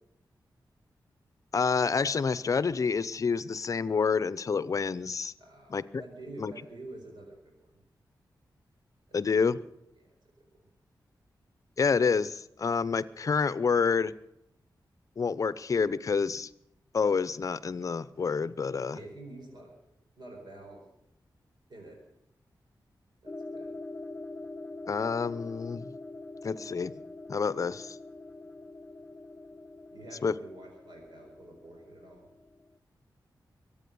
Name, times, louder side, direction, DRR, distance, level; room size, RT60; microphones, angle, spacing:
voice 1, 1.5-5.3 5.7-5.8 6.4-6.5 9.1-9.6 11.8-14.1 15.2-16.5 16.9-19.0 24.9-25.9 26.4-26.9 27.3-28.0 30.2-30.3, left 5 dB, 45° left, 17 dB, 0.6 m, -28 dB
voice 2, 5.4-7.8 9.1-9.5 9.9-10.4 18.9-19.7 20.2-20.8 21.7-22.0 23.2-23.7 29.9-32.3, right 2 dB, 70° right, 1 dB, 4.5 m, -48 dB
sound 1, 23.3-32.8, left 2 dB, 15° left, 0.8 m, -44 dB
23.5 x 8.7 x 6.9 m, 0.81 s
wide cardioid pair, 150°, 8 cm